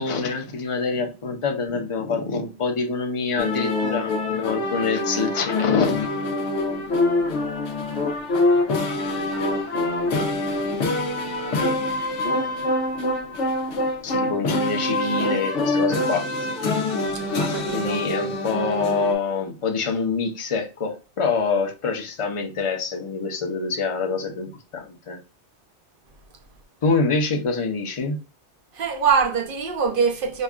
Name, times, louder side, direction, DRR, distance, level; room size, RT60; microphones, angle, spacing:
voice 1, 0.0-6.1 14.0-16.3 17.7-25.2 26.8-28.2, left 4 dB, 35° left, 0.7 m, -25 dB
sound 1, 3.4-19.1, left 2 dB, 80° left, 1.0 m, -25 dB
voice 2, 17.1-18.0 28.7-30.4, right 6 dB, 55° right, 0.8 m, -24 dB
5.3 x 2.3 x 2.3 m
omnidirectional pair, 1.2 m